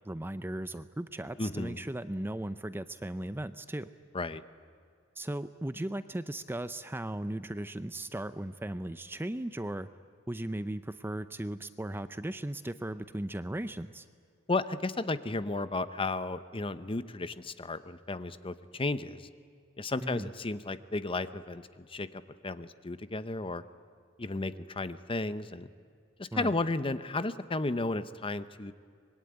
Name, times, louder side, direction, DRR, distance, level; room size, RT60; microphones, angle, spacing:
voice 1, 0.0-3.9 5.2-9.9 10.3-14.1 20.0-20.3 26.3-26.5, right 1 dB, 10° right, 12 dB, 0.6 m, -37 dB
voice 2, 1.4-1.8 4.1-4.4 14.5-19.2 19.8-23.6 24.2-25.7 26.2-28.7, left 2 dB, 25° left, 13 dB, 0.8 m, -33 dB
25.0 x 21.5 x 9.6 m, 2.2 s
head